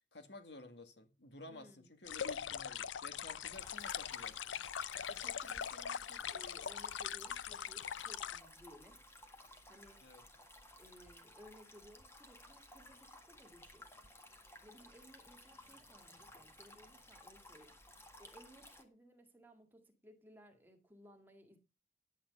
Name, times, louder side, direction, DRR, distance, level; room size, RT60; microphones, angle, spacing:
voice 1, 0.1-4.4 10.0-10.2, left 2 dB, 65° left, 2.0 m, -53 dB
voice 2, 1.5-2.1 5.1-9.0 9.7-10.1 10.8-14.1 14.6-17.8 18.2-21.6, equal, 10° right, 2.0 m, -60 dB
sound 1, 2.1-8.4, left 8 dB, 85° left, 0.5 m, -42 dB
sound 2, 3.5-18.8, left 1 dB, 15° left, 1.7 m, -58 dB
10.5 x 8.7 x 5.4 m
head